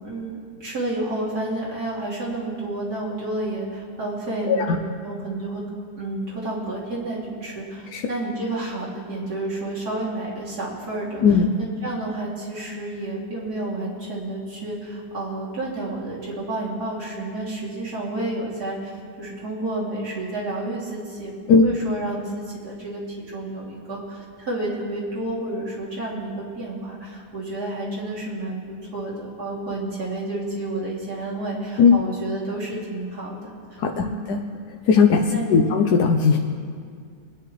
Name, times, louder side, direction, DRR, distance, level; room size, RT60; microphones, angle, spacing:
voice 1, 0.0-5.6 6.0-11.2 11.6-23.0 23.3-33.5 33.9-34.2 35.3-35.7, right 2 dB, 75° right, -6 dB, 3.4 m, -30 dB
voice 2, 4.5-4.8 7.9-8.0 11.2-11.5 21.5-21.7 31.8-32.0 33.8-34.4 34.9-36.4, left 5 dB, 85° left, 3 dB, 1.3 m, -17 dB
25.0 x 9.7 x 3.2 m, 2.1 s
omnidirectional pair, 1.7 m